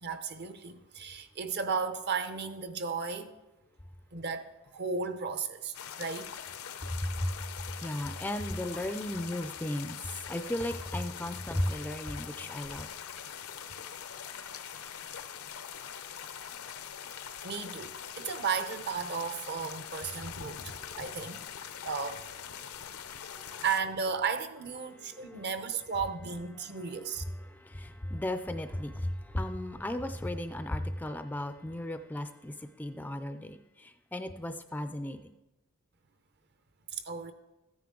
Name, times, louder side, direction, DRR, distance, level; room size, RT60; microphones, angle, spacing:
voice 1, 0.0-3.3 4.1-6.3 17.4-20.6 21.0-21.4 21.8-22.2 23.6-27.2 36.9-37.3, right 5 dB, 50° right, 0.8 m, -34 dB
sound 1, 5.7-23.8, left 8 dB, 85° left, 0.7 m, -43 dB
voice 2, 6.9-7.3 7.7-12.9 20.5-21.4 21.7-21.9 22.6-23.6 24.9-25.4 26.6-26.9 27.2-35.3, left 1 dB, 10° left, 0.4 m, -36 dB
14.0 x 9.3 x 3.8 m
head